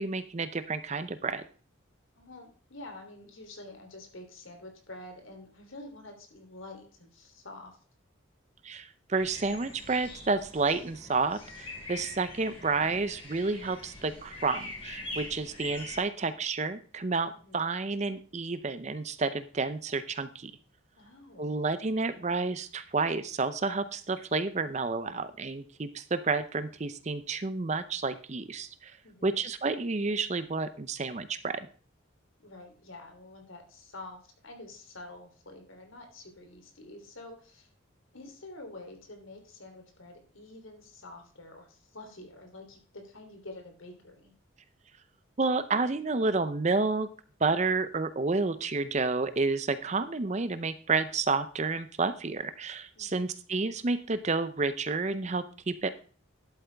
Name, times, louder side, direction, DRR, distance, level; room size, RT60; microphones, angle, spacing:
voice 1, 0.0-1.4 8.6-20.5 21.4-28.9 29.2-31.7 45.4-47.1 47.4-55.9, right 3 dB, 35° right, 12 dB, 0.5 m, -30 dB
voice 2, 2.2-7.8 17.4-17.7 21.0-21.5 29.0-29.4 32.4-37.7 38.1-44.3 52.9-53.3, left 2 dB, 80° left, 4 dB, 3.1 m, -48 dB
sound 1, 9.1-16.0, left 2 dB, 25° left, 2.9 m, -43 dB
11.5 x 8.4 x 3.4 m, 0.40 s
head